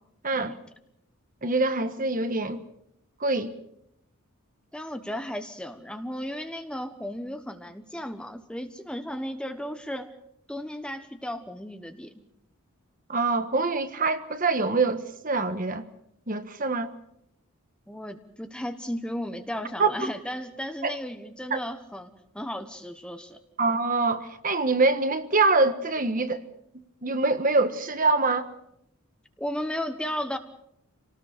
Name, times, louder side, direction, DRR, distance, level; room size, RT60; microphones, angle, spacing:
voice 1, 0.2-0.5 1.4-2.6 3.2-3.5 13.1-15.8 16.3-16.9 19.8-19.9 20.8-21.0 21.5-21.6 23.6-26.4 27.0-28.5, right 3 dB, 40° right, 1.4 m, -24 dB
voice 2, 4.7-10.1 10.5-12.1 17.9-23.4 29.4-30.4, equal, 5° left, 1.1 m, -35 dB
26.5 x 19.0 x 6.7 m
head